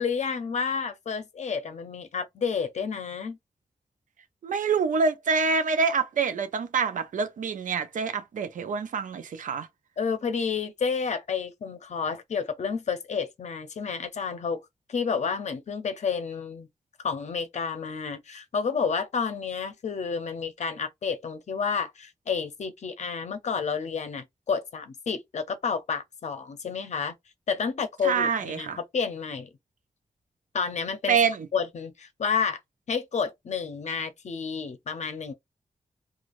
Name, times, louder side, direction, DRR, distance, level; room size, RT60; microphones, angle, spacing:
voice 1, 0.0-3.4 10.0-14.6 14.9-16.7 17.0-27.1 27.5-29.5 30.5-31.2 31.5-32.6 32.9-35.3, left 6 dB, 65° left, 0.6 m, -30 dB
voice 2, 4.4-9.7 28.0-28.8 31.1-31.5, right 5 dB, 85° right, 0.5 m, -26 dB
3.1 x 2.4 x 2.5 m
wide cardioid pair, 170°, 13 cm